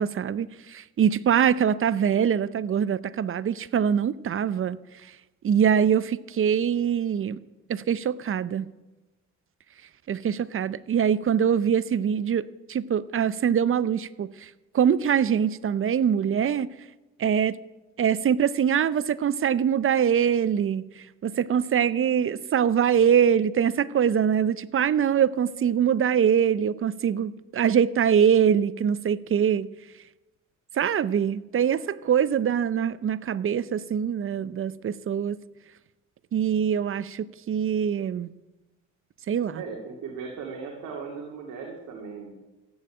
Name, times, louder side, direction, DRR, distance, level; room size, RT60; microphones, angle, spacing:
voice 1, 0.0-4.8 5.4-7.4 7.7-8.7 10.1-14.5 14.7-16.7 17.2-17.6 18.0-20.9 21.2-29.7 30.8-35.4 36.3-38.3 39.3-39.6, right 8 dB, 45° right, 0.6 m, -23 dB
voice 2, 39.5-42.3, right 5 dB, 75° right, 2.8 m, -37 dB
14.0 x 9.2 x 8.8 m
cardioid pair, 90°, 30 cm